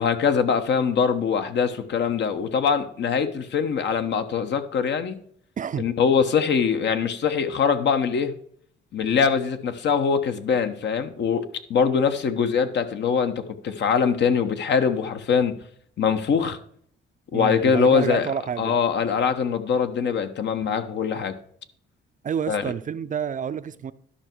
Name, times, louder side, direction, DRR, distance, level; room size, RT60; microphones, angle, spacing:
voice 1, 0.0-5.2 5.8-8.3 8.9-15.6 16.0-16.6 17.3-18.3 18.6-21.4 22.5-22.6, left 6 dB, 65° left, 8 dB, 1.1 m, -23 dB
voice 2, 5.6-5.9 17.3-18.7 22.2-23.9, right 7 dB, 40° right, 13 dB, 0.5 m, -29 dB
11.5 x 5.6 x 4.6 m, 0.63 s
cardioid pair, 90°, 20 cm